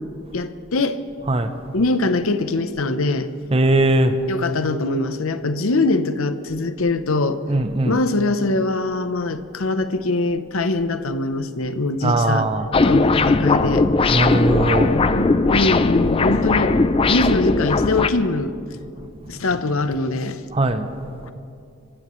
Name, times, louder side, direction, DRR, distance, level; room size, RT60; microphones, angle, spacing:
voice 1, 0.3-1.0 1.7-3.3 4.3-7.4 7.9-12.5 12.8-13.9 14.9-16.7 17.1-18.5 19.3-20.4 21.2-21.3, left 2 dB, 70° left, 11 dB, 0.8 m, -22 dB
voice 2, 1.2-1.9 3.5-4.3 7.5-8.0 12.0-12.9 14.1-15.0 17.0-17.1 19.0-19.4 20.5-21.3, right 1 dB, 25° right, 8 dB, 0.6 m, -21 dB
sound 1, 12.7-18.1, left 3 dB, 25° left, 0.4 m, -18 dB
26.5 x 15.0 x 3.2 m, 2.5 s
head